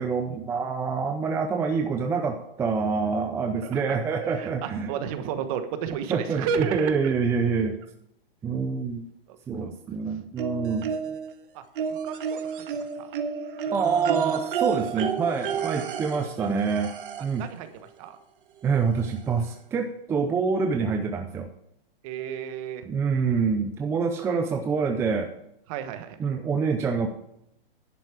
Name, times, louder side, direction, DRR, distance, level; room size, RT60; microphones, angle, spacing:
voice 1, 0.0-4.9 6.1-7.8 8.4-9.1 9.5-11.0 13.7-16.9 17.2-17.5 18.6-21.5 22.8-25.3 26.2-27.1, right 5 dB, 10° right, 4 dB, 0.5 m, -26 dB
voice 2, 3.6-7.1 7.5-7.7 9.3-9.7 11.5-11.6 11.9-12.4 12.9-13.1 13.6-13.8 17.4-17.7 18.0-18.2 22.0-23.2 25.7-26.2, right 8 dB, 35° right, 9 dB, 1.3 m, -33 dB
sound 1, 10.4-11.3 11.8-17.4 18.7-18.8 19.1-19.2, right 7 dB, 60° right, 1.6 m, -31 dB
11.0 x 8.2 x 4.8 m, 0.79 s
hypercardioid pair, 150°, 30 cm